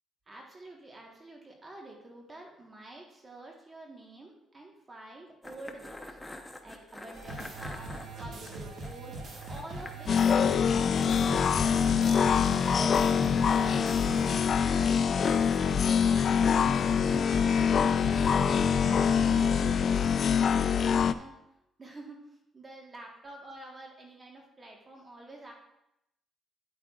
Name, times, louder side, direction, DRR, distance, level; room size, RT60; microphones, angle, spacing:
voice 1, 0.3-6.2 6.6-9.2 9.5-14.1 14.7-16.7 17.0-20.0 20.3-21.3 21.8-22.2 22.5-25.5, right 2 dB, 30° right, 1 dB, 1.4 m, -48 dB
sound 1, 5.4-10.4 10.7-10.8 11.1-11.9 13.4-15.6 16.7-18.4, left 1 dB, 10° left, 0.9 m, -48 dB
sound 2, 7.1-14.5 14.8-14.9 15.2-15.4 15.7-15.8 16.2-19.7, right 1 dB, 65° right, 1.8 m, -39 dB
sound 3, 10.1-21.1, left 7 dB, 55° left, 0.3 m, -25 dB
10.0 x 8.6 x 2.4 m, 0.86 s
cardioid pair, 90°, 0 cm